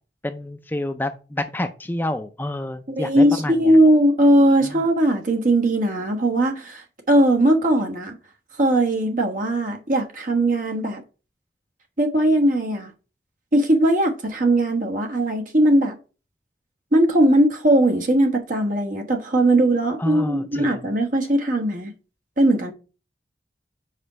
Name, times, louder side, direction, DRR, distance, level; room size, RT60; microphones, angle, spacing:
voice 1, 0.2-3.7 4.6-4.8 20.0-20.9, left 1 dB, 10° left, 0.4 m, -28 dB
voice 2, 2.9-8.1 8.6-11.0 12.0-12.9 13.5-16.0 16.9-21.9 22.4-22.7, right 1 dB, 45° right, 1.2 m, -19 dB
5.0 x 4.4 x 5.5 m
head